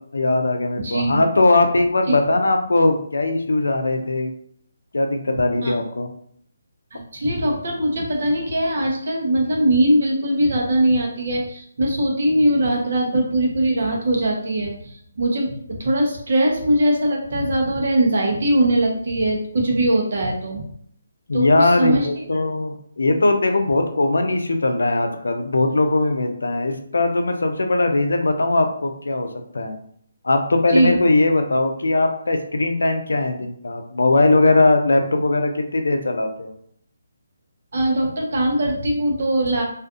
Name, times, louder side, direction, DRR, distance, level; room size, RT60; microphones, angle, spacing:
voice 1, 0.1-4.3 4.9-6.1 21.3-29.3 29.5-29.8 30.2-36.5, left 2 dB, 85° left, 5 dB, 0.4 m, -20 dB
voice 2, 0.8-1.2 2.1-2.2 5.6-5.7 6.9-20.6 21.3-22.1 30.7-31.0 37.7-39.6, right 1 dB, 60° right, 0 dB, 0.8 m, -21 dB
2.5 x 2.4 x 2.4 m, 0.66 s
hypercardioid pair, 160°, 0 cm